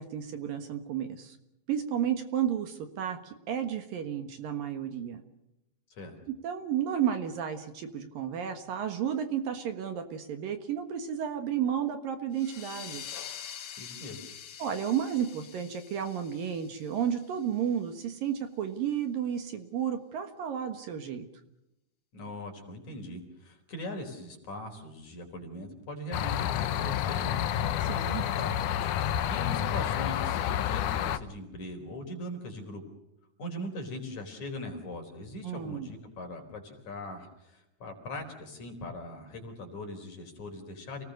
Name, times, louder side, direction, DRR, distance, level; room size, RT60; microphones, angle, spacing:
voice 1, 0.0-1.4 1.7-5.2 6.4-13.0 14.6-21.3 27.8-28.3 35.4-35.9, right 9 dB, 65° right, 7 dB, 3.0 m, -32 dB
sound 1, 12.3-17.6, left 9 dB, 90° left, 1.3 m, -45 dB
voice 2, 13.8-14.2 22.1-27.7 28.2-32.8 33.4-41.0, left 1 dB, 45° left, 4 dB, 5.3 m, -41 dB
sound 2, 26.1-31.2, left 10 dB, 70° left, 1.9 m, -29 dB
29.5 x 19.5 x 6.6 m, 0.88 s
omnidirectional pair, 4.8 m